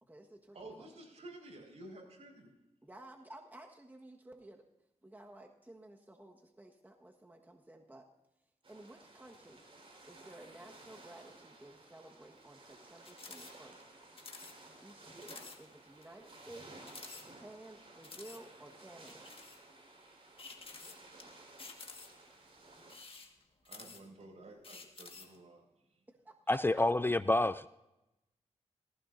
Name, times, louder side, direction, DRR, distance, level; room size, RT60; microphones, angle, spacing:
voice 1, 0.0-0.9 2.8-4.6 5.0-8.0 8.7-9.6 10.1-13.8 14.8-16.8 17.2-19.2 26.2-26.8, right 1 dB, 15° right, 1 dB, 1.4 m, -54 dB
voice 2, 0.5-2.5 23.6-25.6, right 1 dB, 65° right, 0 dB, 4.9 m, -52 dB
sound 1, 8.6-23.0, right 2 dB, 50° right, 4.5 m, -56 dB
sound 2, 13.0-13.5 13.8-13.9 14.2-14.6 14.9-15.0 15.2-15.6 16.0-16.1 16.8-17.6 18.0-18.4 19.1-19.6 20.4-21.2 21.6-22.3 22.8-24.2 24.6-25.4, left 4 dB, 50° left, 1.7 m, -50 dB
voice 3, 26.5-27.7, left 2 dB, 20° left, 15 dB, 0.4 m, -28 dB
18.5 x 15.5 x 2.6 m, 0.91 s
cardioid pair, 65°, 12 cm